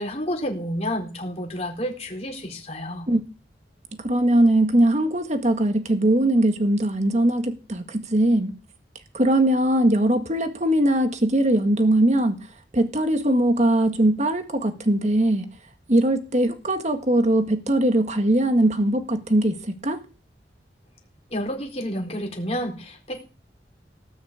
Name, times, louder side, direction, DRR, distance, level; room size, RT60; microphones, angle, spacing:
voice 1, 0.0-3.1 21.3-23.2, equal, 35° left, 4.2 m, -30 dB
voice 2, 4.0-8.5 9.1-12.4 12.7-15.5 15.9-20.0, right 1 dB, 40° right, 1.7 m, -20 dB
18.5 x 6.5 x 8.2 m
head